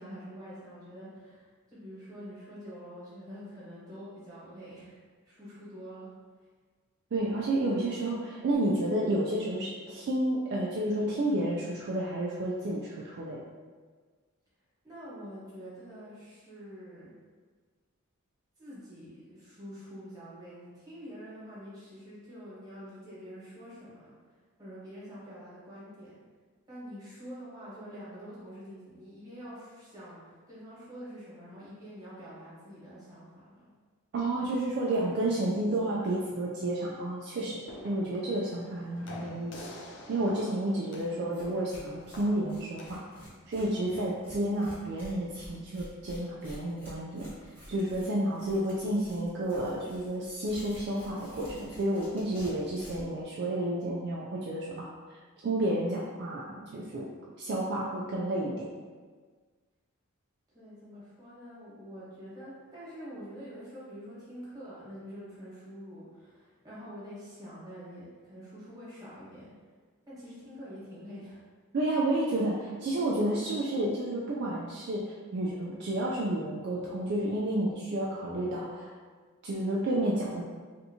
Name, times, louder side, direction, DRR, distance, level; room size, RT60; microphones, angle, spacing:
voice 1, 0.0-5.0 5.3-6.1 14.8-17.1 18.6-24.1 24.6-26.2 26.7-33.7 60.5-69.5 70.1-71.4, equal, 15° right, -10 dB, 1.3 m, -46 dB
voice 2, 7.1-13.4 34.1-37.6 37.8-39.5 40.1-43.0 43.5-47.3 47.7-54.9 55.4-57.1 57.4-58.7 71.7-78.9 79.4-80.4, right 1 dB, 50° right, -4 dB, 0.3 m, -31 dB
sound 1, 37.3-43.2, left 1 dB, 60° left, 0.4 m, -47 dB
Tearing, 40.9-41.0 41.3-41.4 41.7-53.1, equal, 10° left, 1.0 m, -50 dB
3.3 x 2.7 x 2.8 m, 1.5 s
head